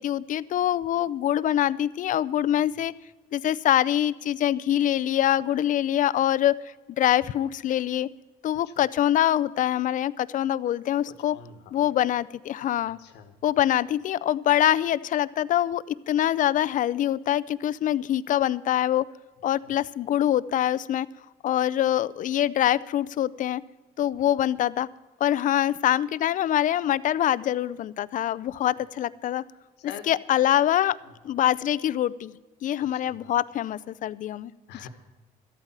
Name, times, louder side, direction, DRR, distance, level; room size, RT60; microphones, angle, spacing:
voice 1, 0.0-2.9 3.3-6.6 6.9-8.1 8.4-11.4 11.7-13.0 13.4-19.0 19.4-21.1 21.4-23.6 24.0-24.9 25.2-29.4 30.1-31.0 31.2-32.4 32.6-34.5, left 11 dB, 50° left, 19 dB, 0.5 m, -24 dB
voice 2, 11.1-11.6 13.0-13.3 19.6-19.7 29.9-30.1 32.8-33.3 34.7-34.9, left 8 dB, 85° left, 9 dB, 1.5 m, -44 dB
13.0 x 8.9 x 7.4 m, 1.2 s
cardioid pair, 110°, 17 cm